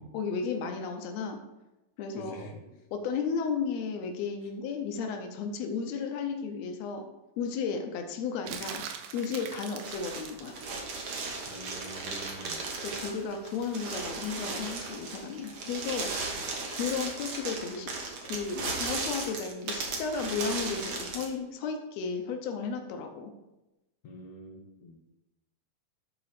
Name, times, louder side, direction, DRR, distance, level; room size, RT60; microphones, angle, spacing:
voice 1, 0.1-1.4 2.0-2.5 2.9-7.1 7.4-8.8 9.1-10.6 12.8-17.9 18.3-23.3, left 5 dB, 90° left, 4 dB, 1.5 m, -34 dB
voice 2, 2.2-2.6 11.5-12.6 16.3-16.4 24.0-25.0, equal, 55° left, 0 dB, 1.9 m, -45 dB
sound 1, 8.5-10.5 13.0-13.2, right 7 dB, 80° right, 2.5 m, -41 dB
sound 2, 9.8-21.3, right 3 dB, 55° right, 1.9 m, -36 dB
11.5 x 4.1 x 4.9 m, 0.99 s
omnidirectional pair, 4.0 m